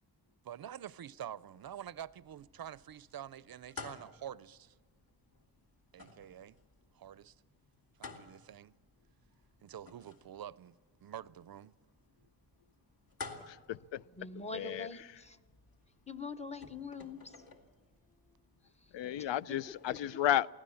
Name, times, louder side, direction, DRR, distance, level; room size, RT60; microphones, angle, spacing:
voice 1, 0.4-4.8 5.9-6.6 6.9-7.4 8.0-8.7 9.6-11.7 19.4-19.5, right 10 dB, 55° right, 0.5 m, -47 dB
sound 1, 1.6-20.0, left 4 dB, 50° left, 2.2 m, -54 dB
voice 2, 13.5-14.0 14.5-14.9 18.9-20.5, left 12 dB, 85° left, 0.5 m, -33 dB
voice 3, 14.1-15.4 16.1-17.4 19.2-19.3, left 3 dB, 15° left, 0.7 m, -43 dB
24.0 x 16.5 x 7.0 m
wide cardioid pair, 155°, 43 cm